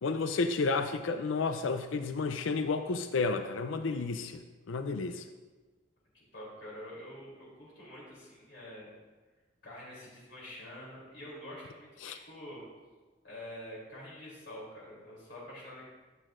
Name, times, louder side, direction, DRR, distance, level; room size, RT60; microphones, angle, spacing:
voice 1, 0.0-4.4 4.7-5.2 12.0-12.2, left 4 dB, 85° left, 8 dB, 0.5 m, -31 dB
voice 2, 6.1-8.9 9.6-12.6 13.2-15.8, left 1 dB, 65° left, -7 dB, 3.1 m, -46 dB
13.0 x 8.1 x 2.5 m, 1.3 s
head